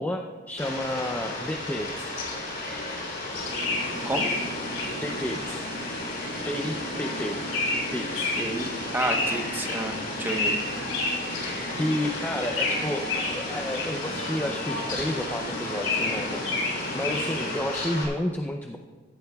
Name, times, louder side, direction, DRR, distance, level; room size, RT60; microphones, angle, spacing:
voice 1, 0.0-2.1 5.0-5.6 6.5-7.4 7.9-8.4 11.7-16.4 16.9-18.8, left 1 dB, 10° left, 3 dB, 0.5 m, -31 dB
Fowl, 0.6-18.1, left 2 dB, 50° left, 3.3 m, -34 dB
sound 1, 3.3-17.6, left 2 dB, 85° left, 4.0 m, -32 dB
voice 2, 8.4-10.6, right 2 dB, 10° right, 3 dB, 1.0 m, -30 dB
15.0 x 14.0 x 2.3 m, 1.4 s
head